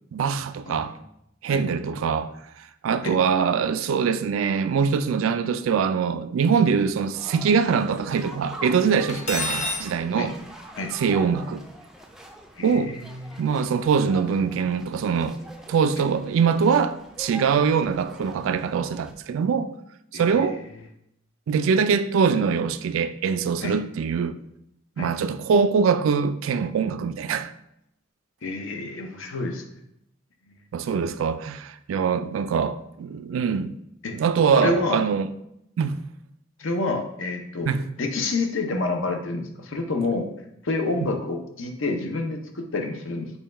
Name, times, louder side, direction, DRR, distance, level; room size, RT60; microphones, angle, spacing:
voice 1, 0.1-0.9 1.4-2.3 2.8-10.3 10.9-11.7 12.6-13.0 13.4-15.4 15.7-19.7 20.1-20.6 21.5-24.4 25.0-27.5 30.7-33.7 34.1-35.3 35.8-36.0 37.7-37.8 41.0-41.1, right 6 dB, 75° right, 0.3 m, -23 dB
sound 1, 7.1-19.1, equal, ahead, 0.4 m, -44 dB
Cutlery silverware, 9.1-9.9, left 2 dB, 35° left, 0.8 m, -28 dB
voice 2, 12.6-13.4 20.1-20.5 23.6-23.7 25.0-25.1 28.4-29.6 30.5-30.6 34.0-34.2 34.6-35.0 36.6-37.7 37.9-40.3 40.6-43.3, left 3 dB, 70° left, 0.7 m, -28 dB
5.4 x 2.3 x 4.2 m
head